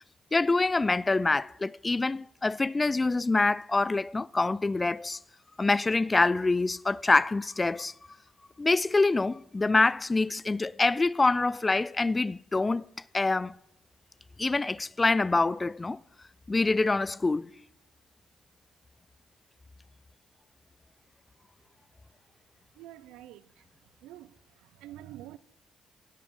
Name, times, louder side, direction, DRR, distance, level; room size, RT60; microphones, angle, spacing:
voice 1, 0.3-5.2 5.6-7.9 8.6-12.9 13.1-13.5 14.4-16.0 16.5-17.5, left 3 dB, 25° left, 0.3 m, -25 dB
voice 2, 22.7-23.7 24.0-25.4, right 13 dB, 75° right, 0.4 m, -47 dB
16.5 x 7.4 x 3.7 m
hypercardioid pair, 45°, 0 cm